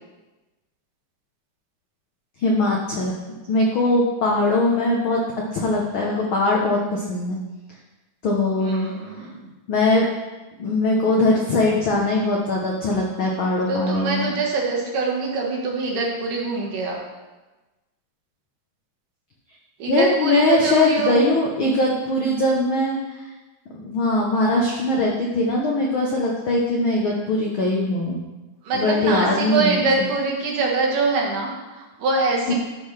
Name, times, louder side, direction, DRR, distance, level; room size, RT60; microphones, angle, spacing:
voice 1, 2.4-3.2 3.5-5.2 5.5-7.4 8.2-8.9 9.7-10.1 10.6-14.3 19.9-23.2 23.7-28.2 28.7-29.8 32.5-32.6, left 2 dB, 80° left, -2 dB, 1.1 m, -21 dB
voice 2, 8.6-9.5 13.7-17.0 19.8-21.5 28.6-32.5, right 3 dB, 80° right, -2 dB, 3.0 m, -24 dB
12.0 x 5.6 x 3.3 m, 1.1 s
omnidirectional pair, 3.6 m